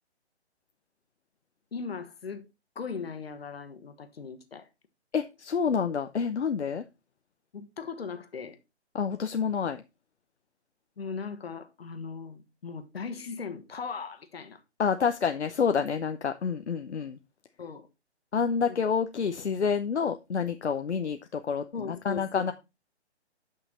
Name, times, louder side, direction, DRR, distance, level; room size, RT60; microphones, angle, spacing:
voice 1, 1.7-2.5 2.7-4.7 7.5-8.6 11.0-14.6 17.6-17.9 18.6-18.8 21.7-22.5, left 5 dB, 60° left, 1.6 m, -38 dB
voice 2, 5.1-6.8 8.9-9.8 14.8-17.2 18.3-22.5, left 6 dB, 80° left, 0.8 m, -28 dB
8.9 x 5.8 x 4.0 m
figure-of-eight pair, 145°, 34 cm